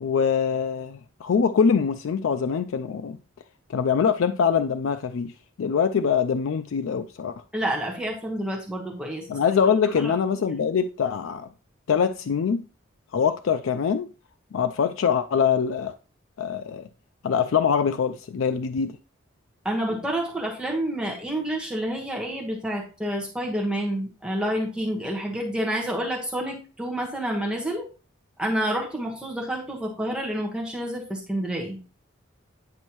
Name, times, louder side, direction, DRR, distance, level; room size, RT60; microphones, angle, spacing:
voice 1, 0.0-3.2 3.7-5.3 5.6-7.4 9.3-11.5 11.9-12.6 13.1-14.1 14.5-15.9 16.4-16.9 17.2-19.0, left 6 dB, 75° left, 0.4 m, -23 dB
voice 2, 7.5-9.4 10.0-10.1 19.6-27.9 28.4-31.8, right 1 dB, 5° right, 1.2 m, -29 dB
9.5 x 5.3 x 3.0 m
head